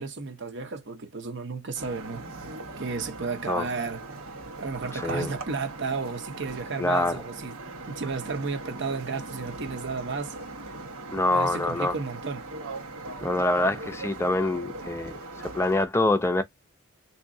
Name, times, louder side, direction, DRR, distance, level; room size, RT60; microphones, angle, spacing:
voice 1, 0.0-2.2 2.8-4.0 4.6-7.6 7.9-10.3 11.3-12.5, right 4 dB, 55° right, 0.8 m, -33 dB
sound 1, 1.7-15.9, right 2 dB, 90° right, 1.1 m, -40 dB
voice 2, 4.9-5.3 6.8-7.2 11.1-11.9 13.2-15.2 15.4-16.4, left 2 dB, 10° left, 0.5 m, -25 dB
3.6 x 2.9 x 2.6 m
head